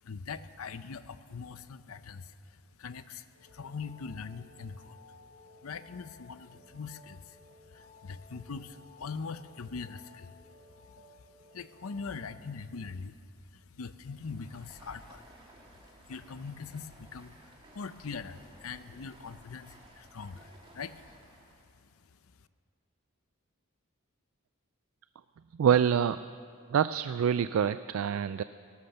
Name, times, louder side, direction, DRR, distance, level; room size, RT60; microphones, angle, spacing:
voice 1, 0.0-5.0 5.6-10.4 10.8-15.7 16.0-22.5, left 5 dB, 80° left, 13 dB, 0.6 m, -43 dB
sound 1, 3.3-12.5, left 3 dB, 60° right, 3.2 m, -57 dB
Stream, 14.1-21.7, right 1 dB, 25° right, 2.4 m, -56 dB
voice 2, 25.6-26.2 26.7-28.4, right 8 dB, 75° right, 13 dB, 0.3 m, -26 dB
18.0 x 11.5 x 6.8 m, 2.3 s
head